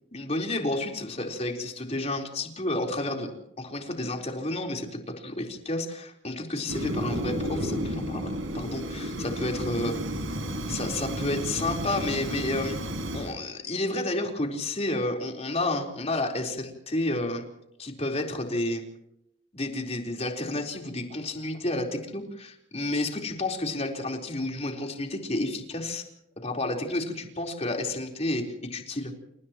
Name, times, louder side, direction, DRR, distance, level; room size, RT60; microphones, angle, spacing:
voice 1, 0.1-3.3 3.6-10.0 10.7-12.8 13.1-17.4 17.8-18.8 19.5-26.0 26.4-29.1, left 2 dB, 35° left, 2 dB, 4.2 m, -31 dB
Fire, 6.7-13.3, equal, 85° right, 4.8 m, -32 dB
29.5 x 29.5 x 3.1 m, 0.79 s
head